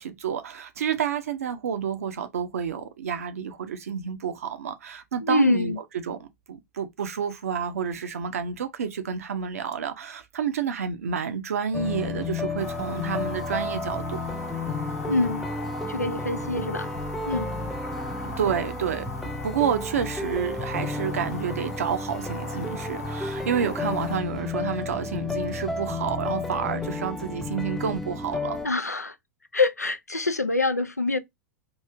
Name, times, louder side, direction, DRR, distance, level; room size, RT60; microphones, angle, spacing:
voice 1, 0.0-14.2 18.4-19.1 19.4-28.6, right 7 dB, 65° right, 0.7 m, -29 dB
voice 2, 5.2-5.8 15.1-15.4 15.9-16.9 17.3-17.5 28.6-29.2 29.5-31.2, left 2 dB, 90° left, 0.4 m, -25 dB
sound 1, 11.7-28.7, left 3 dB, 5° left, 0.6 m, -32 dB
sound 2, 12.6-24.2, left 3 dB, 70° left, 0.8 m, -39 dB
3.1 x 2.7 x 3.4 m
figure-of-eight pair, 90°, 8 cm